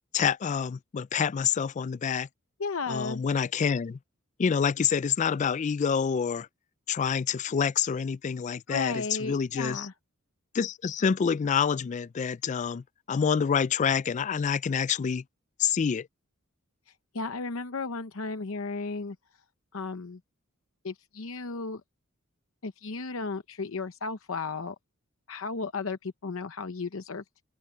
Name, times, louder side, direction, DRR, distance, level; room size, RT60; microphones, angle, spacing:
voice 1, 0.1-2.3 2.9-4.0 4.4-6.5 6.9-9.9 10.5-15.2 15.6-16.1, left 7 dB, 35° left, 0.3 m, -27 dB
voice 2, 2.6-3.2 8.7-9.9 17.1-19.2 19.7-20.2 20.8-21.8 22.6-24.7 25.3-27.2, left 4 dB, 65° left, 0.8 m, -34 dB
open air
head